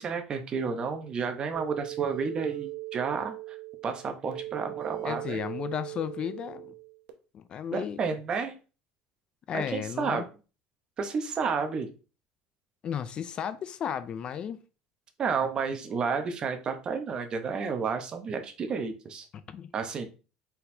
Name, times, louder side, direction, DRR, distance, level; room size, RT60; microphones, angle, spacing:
voice 1, 0.0-3.6 3.8-5.4 7.7-8.6 9.5-10.3 11.0-11.9 15.2-19.3 19.7-20.1, right 5 dB, 35° right, 0.7 m, -31 dB
sound 1, 1.5-7.1, right 18 dB, 85° right, 0.7 m, -39 dB
voice 2, 5.0-6.7 7.3-8.0 9.5-10.2 12.8-14.6 19.3-19.7, left 8 dB, 35° left, 0.3 m, -34 dB
4.2 x 4.1 x 2.7 m
cardioid pair, 130°, 3 cm